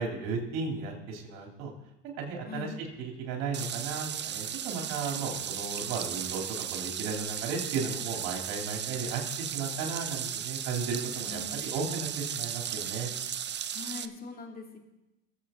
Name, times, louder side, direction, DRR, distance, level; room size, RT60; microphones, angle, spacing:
voice 1, 0.0-1.7 2.2-6.4 6.7-13.1, right 4 dB, 70° right, 1 dB, 3.4 m, -35 dB
sound 1, 3.5-14.1, right 9 dB, 30° right, 0.6 m, -36 dB
voice 2, 11.3-11.6 13.7-14.8, left 4 dB, 25° left, 2 dB, 2.5 m, -41 dB
22.0 x 8.1 x 3.9 m, 0.96 s
supercardioid pair, 85°, 34 cm